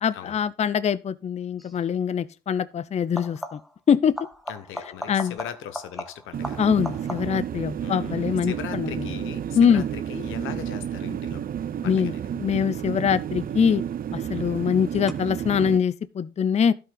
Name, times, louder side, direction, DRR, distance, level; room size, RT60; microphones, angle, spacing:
voice 1, 0.0-3.6 3.9-4.1 5.1-5.4 6.6-9.1 9.5-9.8 11.8-13.8 14.1-16.7, left 7 dB, 35° left, 0.5 m, -23 dB
sound 1, 1.6-1.9 3.0-3.8 4.2-7.5 13.0-13.6 15.1-15.2, equal, ahead, 1.2 m, -38 dB
voice 2, 4.5-6.6 7.8-11.4 11.8-12.2, left 9 dB, 85° left, 1.2 m, -39 dB
sound 2, 6.3-15.8, right 9 dB, 45° right, 0.6 m, -31 dB
12.5 x 5.7 x 3.9 m
cardioid pair, 90°, 20 cm